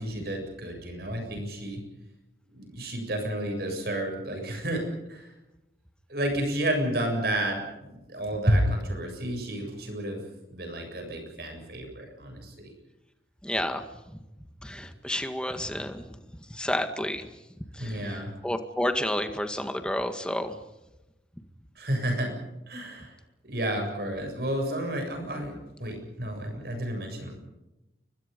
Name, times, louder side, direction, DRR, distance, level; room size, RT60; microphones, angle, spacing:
voice 1, 0.0-1.8 2.5-4.8 5.1-5.3 6.1-10.2 10.5-12.7 17.8-18.3 21.8-22.3 22.7-23.2 23.4-25.5 25.8-27.3, right 1 dB, 55° right, 4 dB, 7.5 m, -30 dB
voice 2, 13.4-13.8 14.6-16.2 16.5-17.3 17.8-20.6, left 1 dB, 5° left, 7 dB, 1.9 m, -30 dB
29.5 x 24.0 x 5.4 m, 0.98 s
head